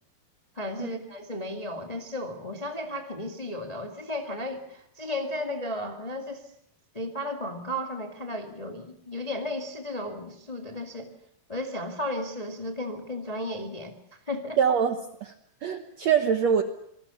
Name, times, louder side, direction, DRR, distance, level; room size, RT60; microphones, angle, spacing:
voice 1, 0.5-6.4 6.9-11.1 11.5-13.9 14.3-14.6, left 1 dB, 15° left, 3 dB, 1.3 m, -34 dB
voice 2, 14.6-15.0 15.2-15.3 15.6-16.6, right 7 dB, 65° right, 7 dB, 1.8 m, -23 dB
27.0 x 20.0 x 7.0 m, 0.72 s
omnidirectional pair, 4.4 m